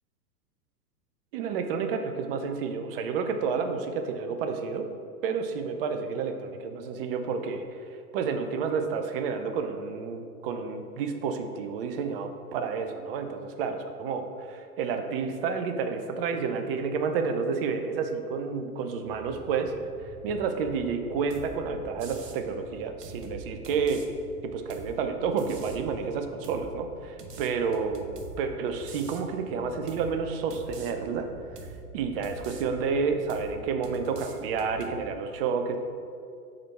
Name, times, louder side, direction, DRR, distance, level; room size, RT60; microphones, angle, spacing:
voice 1, 1.3-4.9 5.2-7.8 8.1-19.7 20.2-26.9 27.4-31.3 31.9-35.8, right 5 dB, 40° right, 6 dB, 0.6 m, -30 dB
sound 1, 19.0-34.1, right 1 dB, 55° right, 1.3 m, -49 dB
sound 2, 21.3-21.6 22.0-22.4 23.0-24.1 24.7-25.0 25.4-25.9 26.4-26.7 27.2-28.4 28.9-29.2 29.9-30.1 30.5-30.9 31.6-31.8 32.2-32.6 33.3-33.6 33.8-35.0, right 4 dB, 85° right, 0.9 m, -45 dB
4.9 x 4.5 x 5.8 m, 2.4 s
figure-of-eight pair, 105°, 47 cm